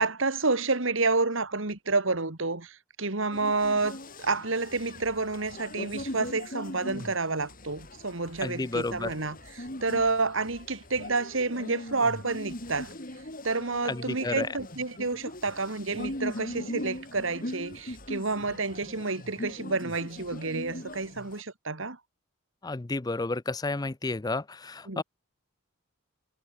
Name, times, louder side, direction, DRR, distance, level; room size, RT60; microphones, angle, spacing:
voice 1, 0.0-12.9 13.4-22.0 24.9-25.0, right 3 dB, 65° right, 2.2 m, -29 dB
sound 1, 3.3-21.4, left 1 dB, 40° left, 5.0 m, -40 dB
voice 2, 8.4-9.1 13.9-14.5 22.6-25.0, left 3 dB, 20° left, 0.5 m, -31 dB
head